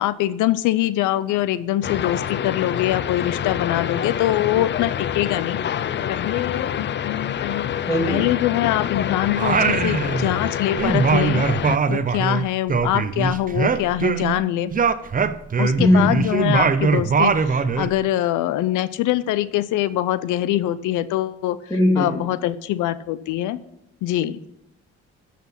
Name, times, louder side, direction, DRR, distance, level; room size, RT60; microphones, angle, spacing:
voice 1, 0.0-5.6 6.1-7.7 8.1-11.5 11.9-14.7 15.6-21.6 22.0-23.6 24.0-24.4, left 14 dB, 85° left, 16 dB, 0.5 m, -23 dB
sound 1, 1.8-11.8, left 9 dB, 40° left, 0.4 m, -26 dB
voice 2, 7.9-8.3 15.8-16.1 21.7-22.2, left 1 dB, 10° left, -1 dB, 2.5 m, -19 dB
Singing, 9.4-10.5 10.8-14.4 14.7-17.9, right 5 dB, 30° right, 0.6 m, -21 dB
11.5 x 5.9 x 5.7 m, 0.83 s
cardioid pair, 90°, 30 cm